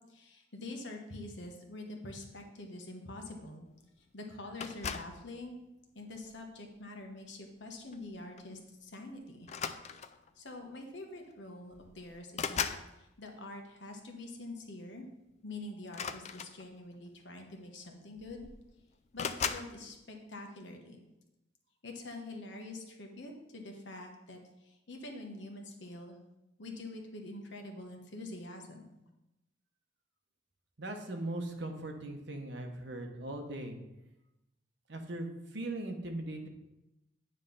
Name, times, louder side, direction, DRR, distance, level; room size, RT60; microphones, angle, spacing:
voice 1, 0.1-3.7 4.0-5.6 5.9-9.5 10.4-12.6 13.0-15.1 15.4-18.5 19.1-21.0 21.8-26.2 26.6-28.8, left 2 dB, 60° left, 2 dB, 1.1 m, -45 dB
sound 1, 4.6-5.2 6.1-6.4 7.9-8.1 8.4-8.6 9.4-10.3 11.3-11.4 11.7-12.9 15.8-16.9 17.8-17.9 18.2-18.7 19.2-19.7, left 7 dB, 35° left, 0.3 m, -38 dB
voice 2, 30.8-33.8 34.9-36.5, right 1 dB, 60° right, 3 dB, 1.0 m, -39 dB
9.4 x 3.3 x 5.3 m, 0.94 s
head